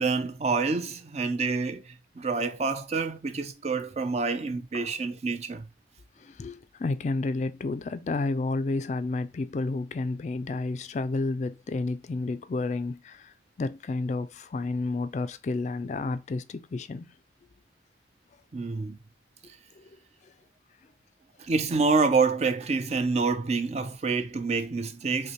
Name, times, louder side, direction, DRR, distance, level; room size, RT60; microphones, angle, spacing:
voice 1, 0.0-5.7 18.5-19.0 21.4-25.3, right 4 dB, 35° right, 0.4 m, -27 dB
voice 2, 6.2-17.1 19.8-19.9, left 3 dB, 40° left, 0.3 m, -31 dB
5.3 x 2.1 x 2.8 m
head